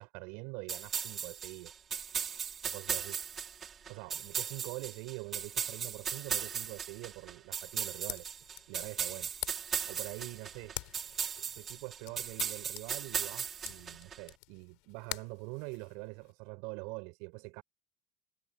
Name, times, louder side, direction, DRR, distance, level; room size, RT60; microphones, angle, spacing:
voice 1, 0.0-1.7 2.6-3.2 3.9-8.3 8.7-9.3 9.8-10.9 11.2-17.6, right 29 dB, 75° right, 5.5 m, -44 dB
sound 1, 0.7-14.2, right 7 dB, 40° right, 3.4 m, -37 dB
sound 2, 7.7-16.3, left 26 dB, 75° left, 5.0 m, -47 dB
hypercardioid pair, 80°, 0 cm